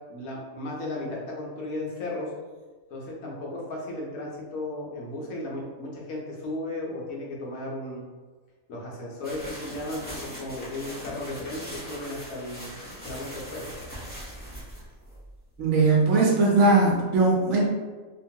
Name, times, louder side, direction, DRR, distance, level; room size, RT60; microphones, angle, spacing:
voice 1, 0.1-2.3 2.9-8.0 8.7-12.8 13.0-13.7, left 1 dB, 80° left, -3 dB, 1.2 m, -35 dB
sound 1, 9.2-15.6, equal, 10° left, 0.6 m, -41 dB
voice 2, 15.6-17.6, right 3 dB, 75° right, -3 dB, 1.0 m, -20 dB
2.9 x 2.3 x 2.7 m, 1.3 s
omnidirectional pair, 1.4 m